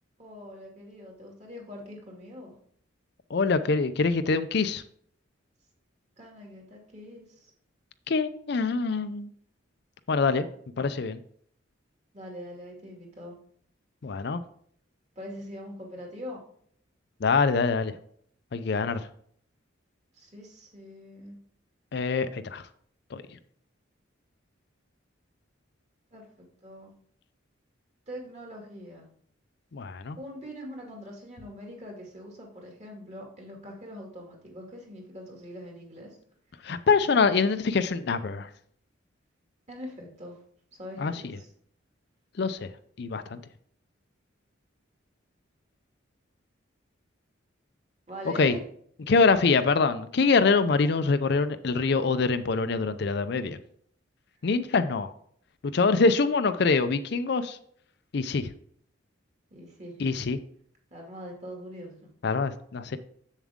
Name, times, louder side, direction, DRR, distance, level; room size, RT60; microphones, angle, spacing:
voice 1, 0.2-2.5 6.2-7.5 12.1-13.3 15.2-16.4 20.1-21.4 26.1-26.9 28.1-29.1 30.2-36.2 39.7-40.4 40.8-41.5 48.1-48.6 59.5-60.0 60.9-62.1, equal, 35° right, 0 dB, 2.3 m, -43 dB
voice 2, 3.3-4.8 8.1-9.3 10.1-10.4 10.8-11.2 14.0-14.4 17.2-17.9 18.5-19.1 21.9-22.7 23.1-23.2 29.7-30.2 36.6-38.5 41.0-41.1 42.4-42.7 43.0-43.4 48.4-48.5 49.1-53.6 54.4-55.1 55.6-57.6 58.1-58.5 60.0-60.4 62.2-63.0, left 4 dB, 55° left, 11 dB, 0.5 m, -24 dB
7.3 x 7.2 x 3.6 m, 0.62 s
head